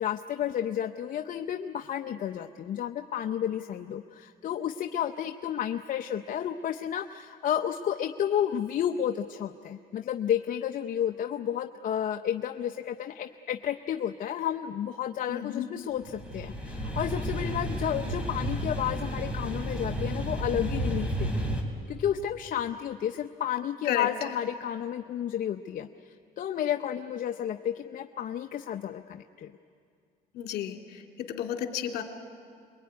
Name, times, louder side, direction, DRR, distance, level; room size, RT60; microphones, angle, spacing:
voice 1, 0.0-21.6 21.9-29.5, left 10 dB, 55° left, 6 dB, 0.7 m, -31 dB
voice 2, 15.3-15.7 23.9-24.1 30.3-31.0 31.3-32.0, left 10 dB, 70° left, 3 dB, 2.5 m, -32 dB
sound 1, 16.0-21.6, equal, 5° right, 4.0 m, -32 dB
26.0 x 22.0 x 9.5 m, 2.3 s
cardioid pair, 110°, 17 cm